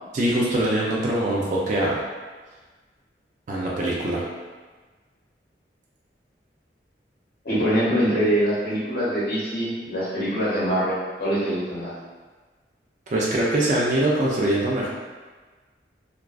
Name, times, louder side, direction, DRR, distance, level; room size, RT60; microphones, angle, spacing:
voice 1, 0.1-2.0 3.5-4.2 13.1-14.9, right 1 dB, 45° right, -5 dB, 0.4 m, -23 dB
voice 2, 7.4-11.9, equal, 55° left, -10 dB, 0.8 m, -24 dB
2.4 x 2.2 x 2.3 m, 1.4 s
head